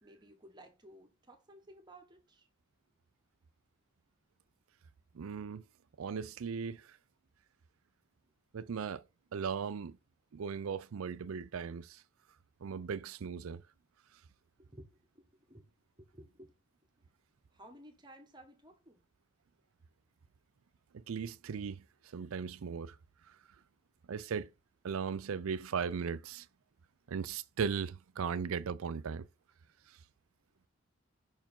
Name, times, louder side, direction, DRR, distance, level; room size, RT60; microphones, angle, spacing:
voice 1, 0.0-2.5 14.6-15.7 16.0-16.6 17.5-19.0, right 1 dB, 20° right, 1.1 m, -56 dB
voice 2, 5.1-5.6 6.0-6.8 8.5-9.0 9.3-10.0 10.3-12.0 12.6-13.6 20.9-21.8 22.1-22.9 24.1-24.5 24.8-26.5 27.1-29.3, right 6 dB, 80° right, 0.4 m, -37 dB
5.7 x 4.6 x 3.7 m
head